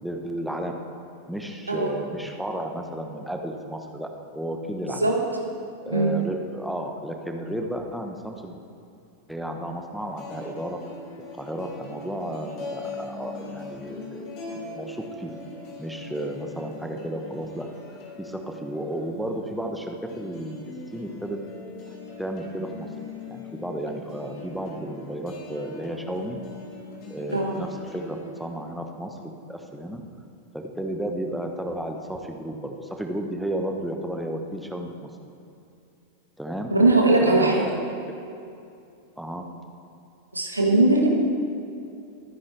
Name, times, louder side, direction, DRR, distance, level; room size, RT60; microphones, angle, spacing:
voice 1, 0.0-0.8 1.3-4.1 4.3-5.1 5.8-8.6 9.3-10.8 11.4-14.3 14.7-15.3 15.8-17.7 18.2-20.6 20.9-21.4 21.9-22.9 23.3-26.4 27.1-29.2 29.5-30.0 30.5-35.1 36.4-36.7 37.2-38.0 39.2-39.4, right 1 dB, ahead, 3 dB, 1.2 m, -33 dB
sound 1, 9.9-28.4, left 2 dB, 40° left, 2.9 m, -41 dB
voice 2, 36.7-37.7 40.3-41.1, right 2 dB, 80° right, 0 dB, 1.8 m, -20 dB
23.0 x 10.0 x 3.4 m, 2.6 s
figure-of-eight pair, 90°, 0 cm